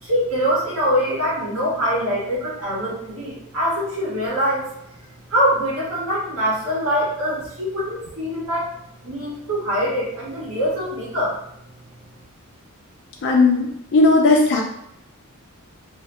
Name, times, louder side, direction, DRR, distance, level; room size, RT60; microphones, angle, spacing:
voice 1, 0.0-4.6 5.3-8.7 9.0-11.4, equal, 70° right, -7 dB, 1.4 m, -23 dB
voice 2, 13.2-14.6, left 3 dB, 55° left, 1 dB, 0.4 m, -16 dB
2.6 x 2.1 x 2.9 m, 0.76 s
head